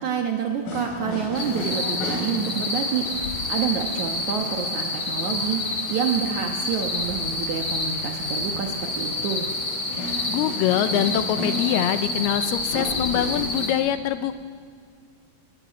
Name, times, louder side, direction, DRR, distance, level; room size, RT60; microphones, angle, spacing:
voice 1, 0.0-9.5, right 7 dB, 65° right, 3 dB, 1.9 m, -28 dB
sound 1, 0.7-13.5, left 1 dB, 55° left, 4.5 m, -35 dB
sound 2, 1.3-13.7, left 2 dB, 30° left, 3.8 m, -29 dB
voice 2, 9.9-14.4, left 11 dB, 80° left, 12 dB, 2.5 m, -24 dB
24.0 x 14.5 x 9.4 m, 2.3 s
omnidirectional pair, 4.8 m